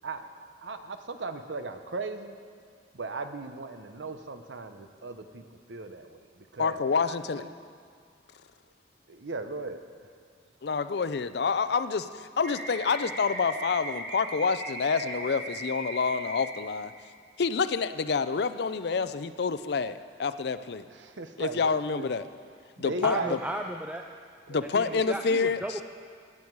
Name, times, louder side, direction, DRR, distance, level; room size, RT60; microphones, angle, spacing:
voice 1, 0.6-2.3 2.9-6.8 7.0-7.5 9.1-9.8 20.9-22.1 22.8-23.4 24.5-24.6 24.9-25.2, right 3 dB, 80° right, 8 dB, 0.8 m, -38 dB
voice 2, 6.6-7.4 10.6-16.9 17.4-20.8 21.4-22.2 22.8-23.4 24.5-25.8, left 5 dB, 60° left, 13 dB, 0.5 m, -28 dB
sound 1, 12.4-16.4, right 2 dB, 55° right, 2.3 m, -38 dB
voice 3, 23.0-24.0 24.7-25.8, right 1 dB, 5° right, 3 dB, 0.4 m, -34 dB
16.5 x 9.8 x 4.7 m, 2.2 s
head